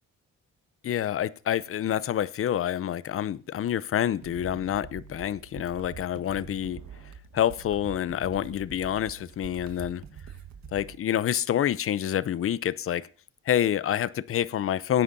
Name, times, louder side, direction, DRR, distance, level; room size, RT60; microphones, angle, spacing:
voice 1, 0.8-6.8 7.3-10.0 10.7-13.1 13.5-15.0, left 10 dB, 45° left, 0.6 m, -27 dB
sound 1, 4.2-11.0, right 7 dB, 65° right, 1.6 m, -45 dB
18.0 x 9.8 x 2.7 m
cardioid pair, 90°, 30 cm